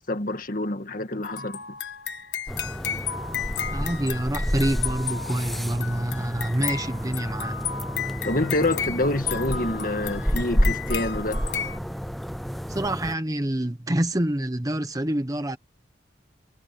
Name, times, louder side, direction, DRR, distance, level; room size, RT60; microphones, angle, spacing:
voice 1, 0.1-1.6 8.2-11.4, left 2 dB, 50° left, 1.8 m, -27 dB
sound 1, 1.2-11.8, left 8 dB, 75° left, 1.5 m, -33 dB
sound 2, 2.5-13.1, equal, ahead, 0.4 m, -30 dB
voice 2, 3.7-7.6 12.7-15.6, right 1 dB, 20° right, 1.1 m, -27 dB
head